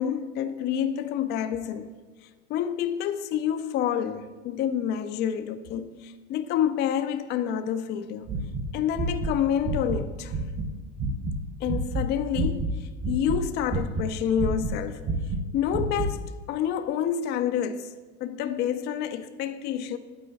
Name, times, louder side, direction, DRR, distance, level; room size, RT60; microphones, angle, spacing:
voice 1, 0.0-2.0 2.5-8.3 8.7-10.4 11.6-15.0 15.5-17.9 18.2-20.0, left 9 dB, 30° left, 0.4 m, -28 dB
sound 1, 8.3-10.7 11.0-11.4 11.6-12.7 13.0-14.1 14.4-16.1, right 2 dB, 35° right, 1.2 m, -29 dB
8.7 x 4.4 x 4.0 m
hypercardioid pair, 105°, 36 cm